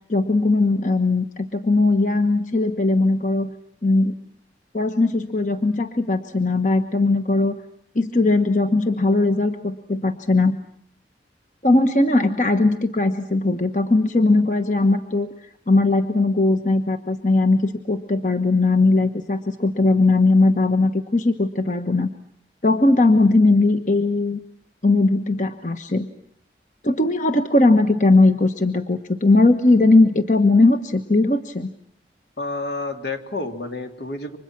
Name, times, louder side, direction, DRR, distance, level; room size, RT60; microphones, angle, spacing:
voice 1, 0.1-3.5 3.8-4.1 4.7-7.6 7.9-10.6 11.6-15.3 15.7-22.1 22.6-24.4 24.8-26.1 26.8-31.7, left 2 dB, 45° left, 7 dB, 1.2 m, -19 dB
voice 2, 32.4-34.4, left 2 dB, 75° left, 5 dB, 3.0 m, -29 dB
30.0 x 25.5 x 6.1 m, 0.67 s
head